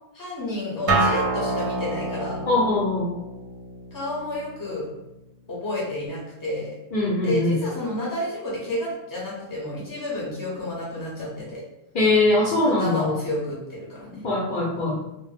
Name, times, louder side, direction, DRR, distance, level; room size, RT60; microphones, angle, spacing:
voice 1, 0.1-2.4 3.9-4.9 5.5-6.7 7.2-11.6 12.8-14.2, left 1 dB, 20° left, -6 dB, 0.7 m, -30 dB
Acoustic guitar, 0.9-6.1, right 2 dB, 55° right, 0.7 m, -28 dB
voice 2, 2.5-3.1 6.9-7.6 11.9-13.1 14.2-15.0, left 2 dB, 55° left, -6 dB, 0.8 m, -21 dB
2.1 x 2.1 x 3.2 m, 0.90 s
omnidirectional pair, 1.1 m